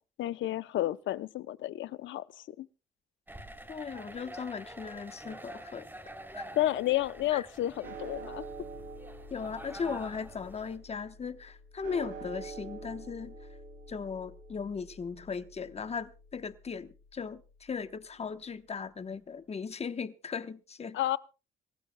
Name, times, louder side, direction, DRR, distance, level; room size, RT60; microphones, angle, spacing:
voice 1, 0.2-2.7 6.5-8.4 20.9-21.2, left 14 dB, 75° left, 0.7 m, -31 dB
sound 1, 3.3-10.8, right 1 dB, 10° right, 3.1 m, -47 dB
voice 2, 3.7-5.9 6.3-6.5 7.3-7.4 9.3-13.4 13.9-21.0, left 5 dB, 30° left, 1.0 m, -38 dB
sound 2, 7.8-18.2, right 3 dB, 75° right, 3.4 m, -47 dB
26.5 x 15.5 x 2.2 m
cardioid pair, 90°, 20 cm